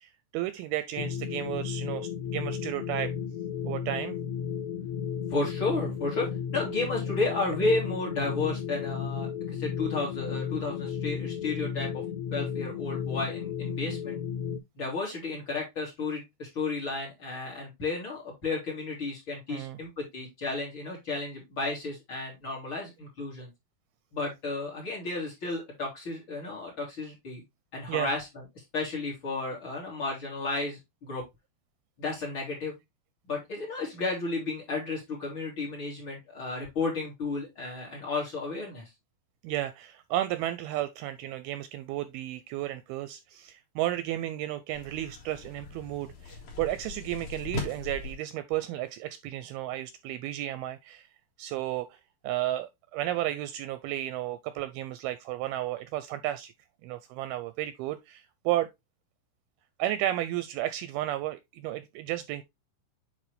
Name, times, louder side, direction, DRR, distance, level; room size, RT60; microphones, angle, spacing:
voice 1, 0.0-3.1 3.7-4.2 19.5-19.8 27.9-28.1 39.4-51.1 51.4-52.0 52.2-56.5 56.8-58.7 59.8-62.4, right 14 dB, 80° right, 2.3 m, -33 dB
sound 1, 1.0-14.6, left 8 dB, 85° left, 2.7 m, -34 dB
voice 2, 5.3-12.0 12.3-14.2 14.7-23.5 24.1-27.4 27.7-28.3 28.7-31.2 32.0-32.8 33.3-38.9, left 3 dB, 35° left, 2.9 m, -33 dB
sound 2, 44.7-48.1, left 3 dB, 55° left, 3.0 m, -39 dB
8.7 x 4.2 x 3.2 m
omnidirectional pair, 4.7 m